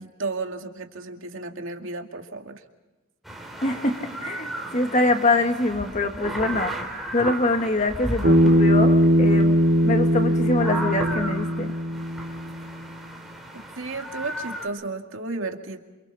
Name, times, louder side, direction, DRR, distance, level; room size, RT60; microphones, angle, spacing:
voice 1, 0.0-2.6 13.8-15.8, right 3 dB, 75° right, 4 dB, 2.3 m, -33 dB
sound 1, 3.2-14.7, right 1 dB, ahead, 3.2 m, -35 dB
voice 2, 3.6-6.8 7.1-9.6 9.8-11.7, left 2 dB, 35° left, 6 dB, 1.8 m, -24 dB
Bass guitar, 8.2-12.6, equal, 55° right, 2.6 m, -20 dB
29.0 x 28.0 x 4.2 m, 1.1 s
head